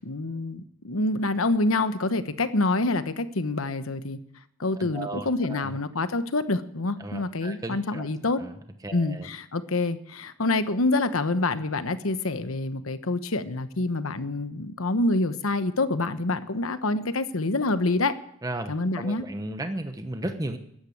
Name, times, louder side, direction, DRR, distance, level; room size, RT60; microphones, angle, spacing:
voice 1, 0.0-4.2 4.6-8.4 8.9-18.2 18.7-19.2, left 2 dB, 90° left, 11 dB, 1.1 m, -26 dB
voice 2, 4.8-5.8 7.0-8.1 8.4-8.6 8.8-9.3 18.4-20.6, right 1 dB, 15° right, 7 dB, 1.0 m, -35 dB
14.0 x 10.5 x 8.6 m, 0.74 s
head